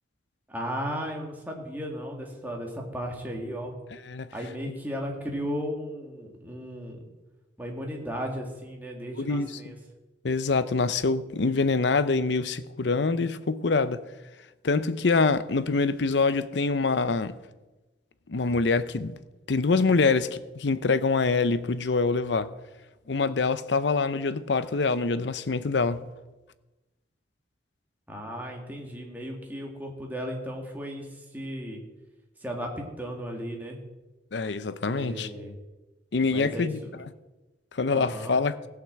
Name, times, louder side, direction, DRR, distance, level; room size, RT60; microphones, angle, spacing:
voice 1, 0.5-3.7 4.3-7.0 7.6-9.8 28.1-31.8 32.4-33.8 34.8-35.5 36.3-36.7 37.9-38.4, equal, 10° right, 2.1 m, -35 dB
voice 2, 9.2-9.7 10.2-14.0 14.6-17.4 18.3-19.2 19.5-22.5 23.1-26.0 34.3-35.3 36.1-37.1 37.7-38.6, left 4 dB, 70° left, 0.6 m, -25 dB
16.5 x 5.9 x 7.6 m
head